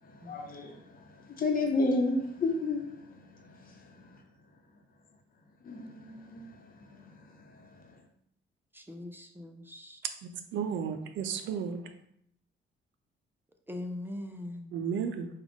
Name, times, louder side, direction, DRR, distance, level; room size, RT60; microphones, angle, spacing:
voice 1, 0.0-3.9 5.6-8.0, left 2 dB, 45° left, 0.9 m, -33 dB
voice 2, 8.7-10.0 13.7-14.8, left 1 dB, 10° right, 0.5 m, -41 dB
voice 3, 10.2-11.8 14.7-15.3, right 7 dB, 75° right, 0.5 m, -33 dB
4.8 x 2.4 x 3.6 m
cardioid pair, 90°, 20 cm